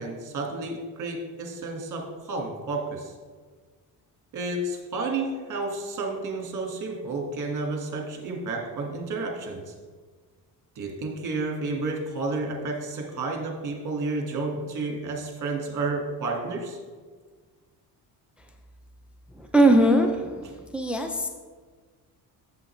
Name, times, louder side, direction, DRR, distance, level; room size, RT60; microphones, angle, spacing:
voice 1, 0.0-3.1 4.3-9.7 10.8-16.8, right 3 dB, 45° right, 1 dB, 1.7 m, -31 dB
voice 2, 19.3-21.3, right 1 dB, 5° right, 4 dB, 0.5 m, -21 dB
7.6 x 7.3 x 3.2 m, 1.4 s
cardioid pair, 110°, 40 cm